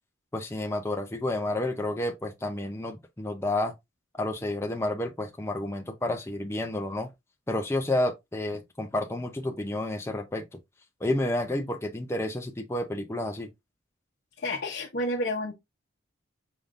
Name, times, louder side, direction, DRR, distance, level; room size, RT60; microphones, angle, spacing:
voice 1, 0.3-3.7 4.2-7.1 7.5-10.4 11.0-13.5, left 1 dB, 15° left, 0.5 m, -30 dB
voice 2, 14.4-15.5, left 1 dB, 50° left, 0.8 m, -30 dB
5.1 x 3.7 x 2.5 m
head